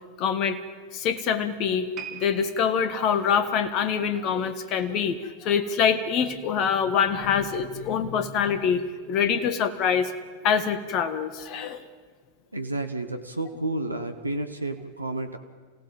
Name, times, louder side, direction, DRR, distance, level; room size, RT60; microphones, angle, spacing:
voice 1, 0.2-0.6 0.9-1.9 2.1-10.1 10.4-11.8, left 7 dB, 40° left, 12 dB, 1.7 m, -25 dB
sound 1, 1.9-5.2 5.5-5.8 6.5-6.6, right 7 dB, 35° right, 2.8 m, -45 dB
voice 2, 12.5-15.4, right 2 dB, 85° right, 7 dB, 1.3 m, -31 dB
28.0 x 16.5 x 9.1 m, 1.5 s
figure-of-eight pair, 90°, 0 cm